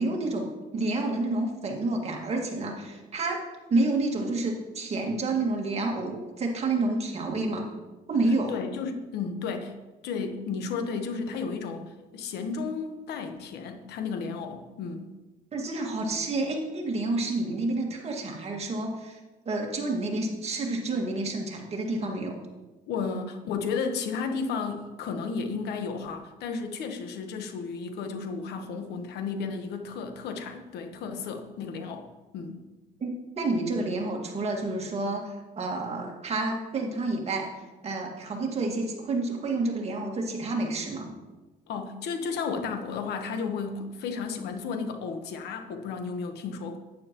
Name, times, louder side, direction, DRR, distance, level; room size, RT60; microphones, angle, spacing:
voice 1, 0.0-3.4 3.7-7.7 8.1-8.6 15.5-19.2 19.5-22.4 33.0-37.5 37.8-41.1, right 2 dB, 40° right, 1 dB, 1.9 m, -29 dB
voice 2, 8.5-9.7 10.0-15.1 22.9-32.1 32.3-32.6 41.7-46.8, left 5 dB, 75° left, 6 dB, 1.2 m, -33 dB
11.5 x 9.1 x 3.0 m, 1.2 s
cardioid pair, 110°, 17 cm